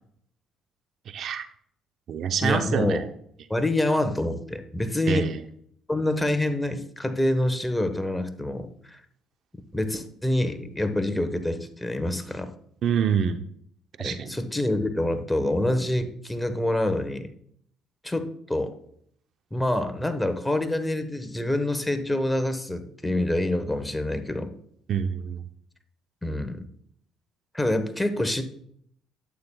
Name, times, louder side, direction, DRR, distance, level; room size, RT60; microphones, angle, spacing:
voice 1, 1.1-1.5 2.1-3.1 5.1-5.4 12.8-13.4 14.0-14.3 24.9-25.4, right 7 dB, 60° right, 9 dB, 0.6 m, -26 dB
voice 2, 2.4-3.0 3.5-5.3 5.9-9.0 9.7-12.5 14.0-17.3 18.0-18.7 19.5-24.5 26.2-26.6 27.5-28.4, left 1 dB, 10° left, 9 dB, 1.1 m, -26 dB
11.5 x 8.5 x 2.3 m, 0.66 s
supercardioid pair, 75°, 0 cm